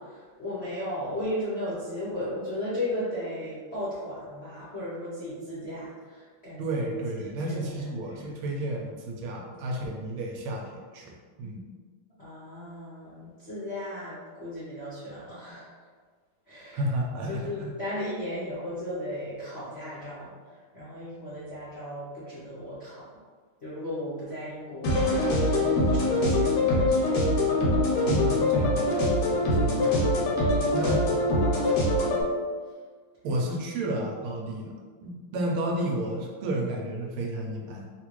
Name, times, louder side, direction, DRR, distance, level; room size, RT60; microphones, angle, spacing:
voice 1, 0.0-6.8 7.2-7.6 8.2-8.3 12.2-15.7 16.5-16.8 17.3-23.0 23.6-25.4 25.9-27.4 29.3-29.5, left 1 dB, 55° left, -12 dB, 0.7 m, -36 dB
voice 2, 6.6-10.6 10.9-11.6 16.7-17.7 28.1-28.9 29.3-29.9 30.7-31.1 33.2-34.7 35.0-37.9, right 1 dB, 80° right, 0 dB, 1.4 m, -31 dB
sound 1, 24.8-32.2, left 1 dB, 80° left, 1.7 m, -23 dB
3.7 x 2.4 x 3.0 m, 1.5 s
omnidirectional pair, 2.4 m